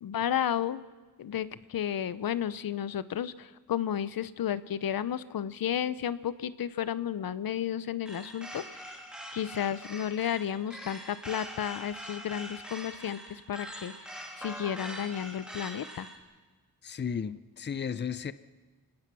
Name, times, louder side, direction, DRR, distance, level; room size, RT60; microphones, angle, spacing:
voice 1, 0.0-0.8 1.2-8.9 9.3-13.9 14.4-16.1, left 9 dB, 80° left, 16 dB, 0.8 m, -32 dB
sound 1, 8.1-16.2, equal, ahead, 3.2 m, -43 dB
voice 2, 16.8-18.3, left 7 dB, 30° left, 15 dB, 0.6 m, -34 dB
29.5 x 17.5 x 6.1 m, 1.3 s
wide cardioid pair, 135°, 34 cm